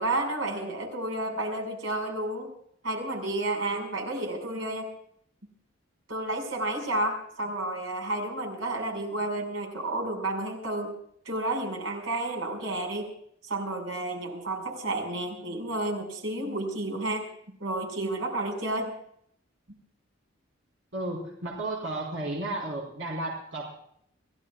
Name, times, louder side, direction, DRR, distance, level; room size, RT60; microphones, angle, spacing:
voice 1, 0.0-2.5 2.8-4.9 6.1-10.9 11.3-13.1 13.4-17.3 17.6-18.9, right 1 dB, 85° right, 2 dB, 5.5 m, -31 dB
voice 2, 20.9-23.7, right 2 dB, 65° right, -2 dB, 4.2 m, -33 dB
29.5 x 17.0 x 2.4 m, 0.70 s
head